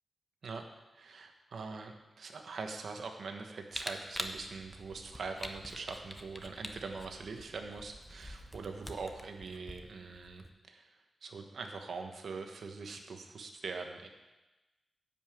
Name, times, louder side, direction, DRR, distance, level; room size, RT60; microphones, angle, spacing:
voice 1, 0.9-14.1, right 4 dB, 70° right, 4 dB, 1.2 m, -43 dB
Camera, 3.7-10.5, left 1 dB, 10° left, 0.8 m, -45 dB
sound 1, 4.2-9.3, right 2 dB, 40° right, 1.2 m, -57 dB
10.5 x 5.6 x 7.8 m, 1.1 s
wide cardioid pair, 115°, 0 cm